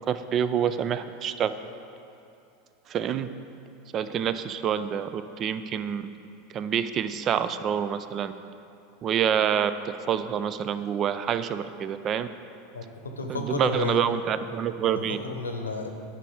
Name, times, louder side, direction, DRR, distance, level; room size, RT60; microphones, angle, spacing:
voice 1, 0.1-1.5 2.9-3.3 3.9-6.0 6.5-8.3 9.0-12.3 13.3-15.2, right 8 dB, 40° right, 12 dB, 0.4 m, -27 dB
voice 2, 12.7-14.0 14.9-15.9, left 2 dB, 90° left, 4 dB, 0.8 m, -32 dB
10.5 x 5.3 x 4.8 m, 2.6 s
hypercardioid pair, 85°, 0 cm